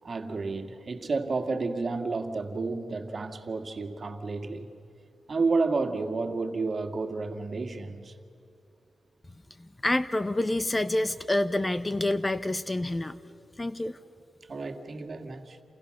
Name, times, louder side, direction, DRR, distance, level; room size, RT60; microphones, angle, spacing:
voice 1, 0.0-4.7 5.3-8.2 14.5-15.6, right 3 dB, 45° right, 2.1 m, -31 dB
voice 2, 9.8-13.1 13.6-14.0, left 1 dB, 20° left, 0.9 m, -27 dB
29.0 x 28.5 x 6.6 m
cardioid pair, 80°, 0 cm